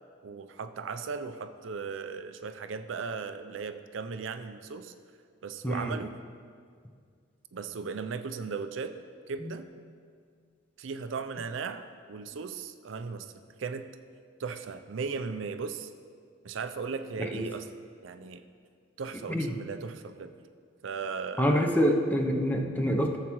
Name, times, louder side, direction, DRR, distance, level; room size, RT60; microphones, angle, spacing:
voice 1, 0.2-4.9 5.4-6.2 7.5-9.0 9.3-9.7 10.8-13.3 13.6-13.9 14.4-15.9 16.4-17.7 18.0-18.4 19.0-20.3 20.8-21.8, right 5 dB, 85° right, 10 dB, 0.5 m, -37 dB
voice 2, 5.6-5.9 9.4-9.6 17.2-17.4 19.3-19.5 21.4-23.2, equal, 10° left, 2 dB, 0.6 m, -26 dB
14.0 x 7.4 x 3.0 m, 2.1 s
head